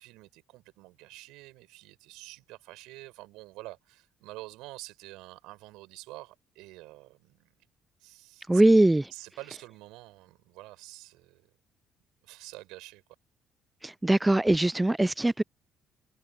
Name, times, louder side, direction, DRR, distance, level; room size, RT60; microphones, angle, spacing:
voice 1, 0.0-7.5 8.0-8.6 9.1-11.5 12.2-13.0, right 20 dB, 75° right, 6.4 m, -47 dB
voice 2, 8.5-9.1 13.8-15.4, right 2 dB, 15° right, 0.4 m, -22 dB
hypercardioid pair, 55°, 0 cm